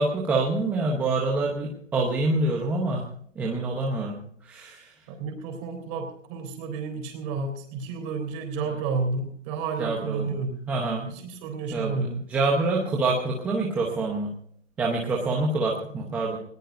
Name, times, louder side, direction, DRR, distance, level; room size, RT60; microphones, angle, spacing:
voice 1, 0.0-3.0 3.4-4.2 4.5-4.8 8.7-8.8 9.8-10.2 10.7-11.1 11.7-14.3 14.8-16.4, right 2 dB, 5° right, -2 dB, 0.8 m, -26 dB
voice 2, 5.1-10.6 11.1-12.2, right 4 dB, 25° right, 4 dB, 3.5 m, -31 dB
20.0 x 19.0 x 2.6 m, 0.63 s
hypercardioid pair, 160°, 38 cm